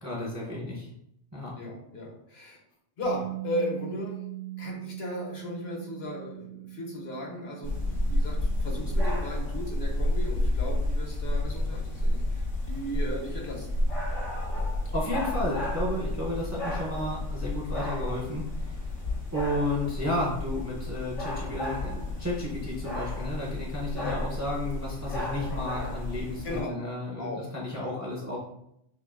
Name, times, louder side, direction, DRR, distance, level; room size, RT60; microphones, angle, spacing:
voice 1, 0.0-0.9 1.3-1.5 14.9-18.8 19.3-28.4, left 1 dB, 15° right, -4 dB, 0.7 m, -32 dB
voice 2, 1.5-2.6 3.0-4.2 4.6-13.7 24.0-24.2 26.4-26.8 27.2-27.9, left 1 dB, 55° left, -1 dB, 1.3 m, -36 dB
Bass guitar, 3.0-9.3, right 17 dB, 65° right, 1.8 m, -40 dB
sound 1, 7.6-26.6, left 1 dB, 80° left, 2.0 m, -31 dB
6.6 x 2.6 x 2.5 m, 0.77 s
omnidirectional pair, 1.3 m